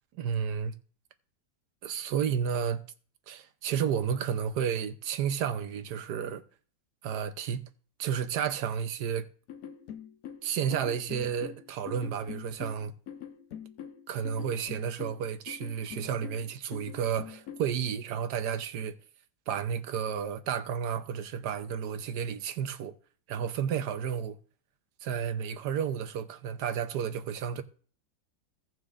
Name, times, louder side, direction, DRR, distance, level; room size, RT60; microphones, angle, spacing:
voice 1, 0.1-0.7 1.8-2.8 3.3-6.4 7.0-7.6 8.0-9.3 10.4-12.9 14.1-19.0 19.5-22.9 23.3-24.4 25.0-27.6, right 8 dB, 70° right, 1.3 m, -32 dB
sound 1, 9.5-17.7, left 8 dB, 60° left, 1.1 m, -44 dB
17.0 x 6.2 x 2.5 m
omnidirectional pair, 2.0 m